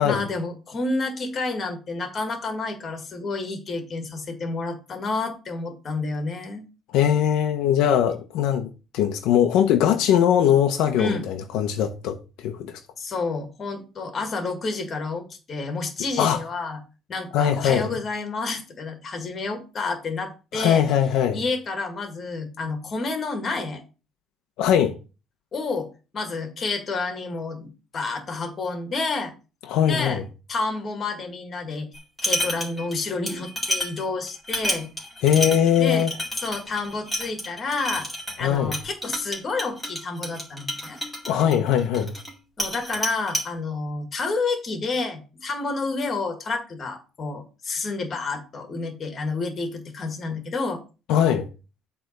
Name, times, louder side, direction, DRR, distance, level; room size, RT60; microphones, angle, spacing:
voice 1, 0.0-6.7 11.0-11.3 13.0-16.8 17.1-20.8 21.3-23.8 25.5-25.9 26.1-29.3 29.9-30.2 30.5-31.9 32.2-34.9 35.8-36.1 36.4-38.1 38.4-41.0 42.6-50.8, left 3 dB, 30° left, 1.9 m, -29 dB
voice 2, 6.9-12.8 16.2-16.4 17.3-18.0 20.5-21.4 24.6-24.9 29.7-30.2 35.2-36.1 38.4-38.7 41.3-42.1 51.1-51.5, left 9 dB, 75° left, 0.9 m, -21 dB
sound 1, 31.9-33.0 33.3-42.3 42.6-43.5, equal, ahead, 2.2 m, -30 dB
8.1 x 3.5 x 6.6 m
cardioid pair, 155°, 0 cm